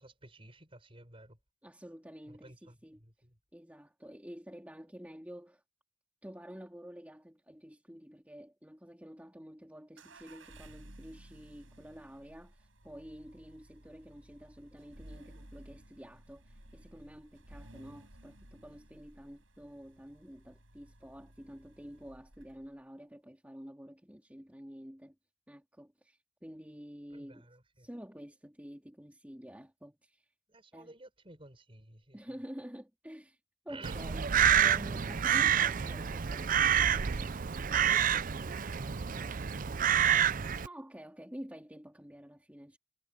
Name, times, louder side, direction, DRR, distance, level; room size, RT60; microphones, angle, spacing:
voice 1, 0.0-1.4 2.3-3.3 27.1-27.9 30.5-32.2 33.7-34.0 37.6-40.4, right 2 dB, 30° right, 7.1 m, -53 dB
voice 2, 1.6-3.0 3.5-5.6 6.2-25.1 25.5-27.5 27.8-30.3 30.7-30.9 32.1-33.4 33.6-37.4 40.6-42.8, equal, 10° right, 2.9 m, -49 dB
sound 1, 10.0-22.8, right 1 dB, 80° right, 6.8 m, -56 dB
Crow, 33.8-40.7, right 9 dB, 45° right, 0.5 m, -28 dB
head